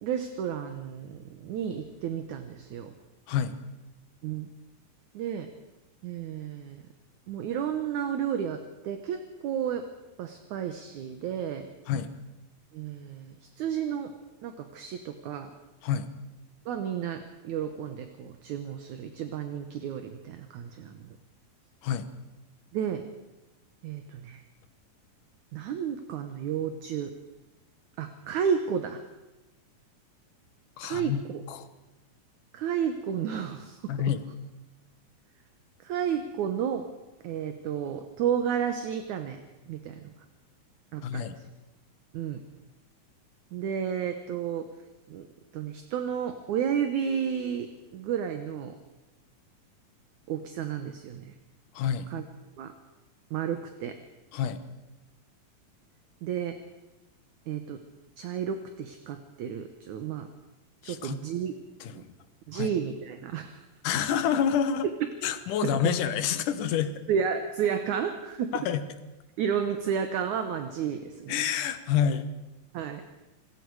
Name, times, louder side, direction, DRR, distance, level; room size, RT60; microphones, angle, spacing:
voice 1, 0.0-2.9 4.2-4.5 5.1-5.5 6.0-6.8 7.3-9.9 10.2-11.7 12.7-14.1 14.4-15.5 16.7-21.0 22.7-23.0 23.8-24.4 25.5-27.1 28.0-29.0 30.8-31.4 32.5-33.8 35.8-36.9 37.2-39.4 39.7-40.1 40.9-41.3 42.1-42.4 43.5-44.7 45.1-45.3 45.5-48.8 50.3-51.3 52.1-52.2 52.6-52.7 53.3-54.0 56.2-56.6 57.5-57.8 58.2-60.3 60.8-61.5 61.9-62.0 62.5-63.6 65.6-65.9 67.1-68.5 69.4-71.4 72.7-73.0, right 8 dB, 65° right, 7 dB, 2.3 m, -32 dB
voice 2, 30.8-31.2 31.5-31.7 33.9-34.2 41.0-41.4 51.7-52.1 54.3-54.6 60.8-61.2 61.8-62.1 62.5-62.7 63.8-64.9 65.2-66.9 68.5-68.8 71.3-72.3, left 8 dB, 70° left, 11 dB, 2.6 m, -28 dB
27.5 x 20.0 x 4.8 m, 1.0 s
omnidirectional pair, 4.0 m